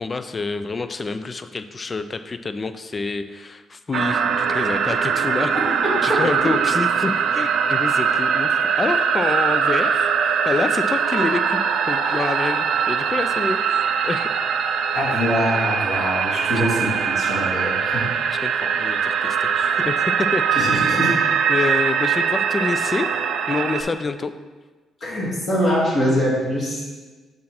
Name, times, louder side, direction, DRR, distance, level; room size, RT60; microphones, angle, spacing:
voice 1, 0.0-5.6 6.0-11.6 11.9-13.6 14.0-14.3 16.5-16.6 18.3-20.4 20.8-20.9 21.5-23.1 23.5-24.3, left 3 dB, 30° left, 10 dB, 0.4 m, -27 dB
sound 1, 3.9-23.8, right 6 dB, 75° right, 0.4 m, -21 dB
voice 2, 5.5-6.2 14.9-18.1 20.5-21.2 25.0-26.8, equal, 55° left, -6 dB, 2.1 m, -23 dB
5.6 x 3.8 x 5.9 m, 1.3 s
cardioid pair, 90°, 0 cm